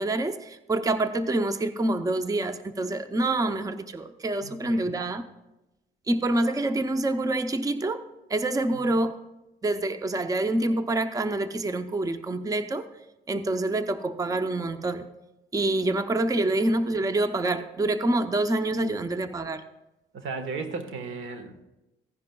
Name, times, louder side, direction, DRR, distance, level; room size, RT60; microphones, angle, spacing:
voice 1, 0.0-5.2 6.1-8.0 8.3-9.2 9.6-12.9 13.3-15.1 15.5-19.6, right 2 dB, 15° right, 10 dB, 0.6 m, -26 dB
voice 2, 4.4-5.3 8.7-8.9 18.8-19.0 20.1-21.6, right 4 dB, 80° right, 8 dB, 1.2 m, -37 dB
16.0 x 10.5 x 2.3 m, 0.98 s
cardioid pair, 90°, 20 cm